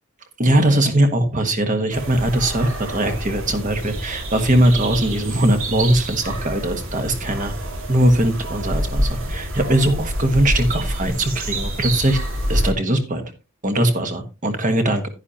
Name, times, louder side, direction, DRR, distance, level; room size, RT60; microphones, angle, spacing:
voice 1, 0.4-7.5 7.9-12.2 12.5-13.2 13.6-15.1, right 1 dB, 35° right, 6 dB, 1.4 m, -20 dB
sound 1, 1.9-12.7, right 1 dB, 60° right, 2.3 m, -27 dB
10.5 x 10.0 x 2.9 m, 0.28 s
head